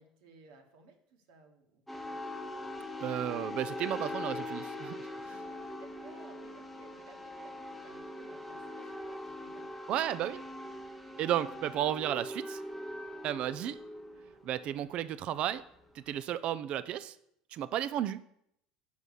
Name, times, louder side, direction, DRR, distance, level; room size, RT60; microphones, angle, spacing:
voice 1, 0.0-2.2 5.0-9.7, right 4 dB, 70° right, 4 dB, 1.3 m, -58 dB
sound 1, 1.9-16.1, left 1 dB, ahead, 1.0 m, -42 dB
voice 2, 3.0-5.4 9.9-10.4 11.2-12.6 13.2-13.8 14.4-15.6 15.9-17.2 17.5-18.2, right 11 dB, 50° right, 15 dB, 0.5 m, -33 dB
5.9 x 5.5 x 6.4 m, 0.74 s
hypercardioid pair, 75°, 2 cm